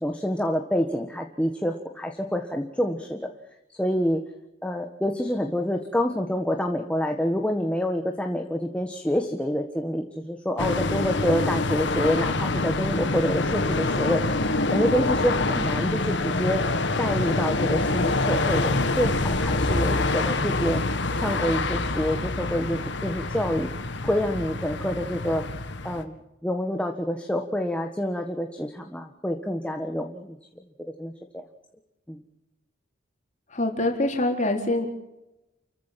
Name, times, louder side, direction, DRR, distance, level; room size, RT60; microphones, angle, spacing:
voice 1, 0.0-3.3 3.7-4.2 4.6-14.2 14.7-16.7 17.0-20.8 21.2-23.7 24.0-25.4 25.8-30.4 31.0-31.4 32.1-32.2, equal, 5° left, 4 dB, 1.5 m, -27 dB
sound 1, 10.6-26.0, left 2 dB, 65° left, 1.9 m, -26 dB
voice 2, 33.5-34.9, left 1 dB, 40° left, 2 dB, 4.1 m, -25 dB
29.5 x 15.0 x 7.6 m, 0.92 s
head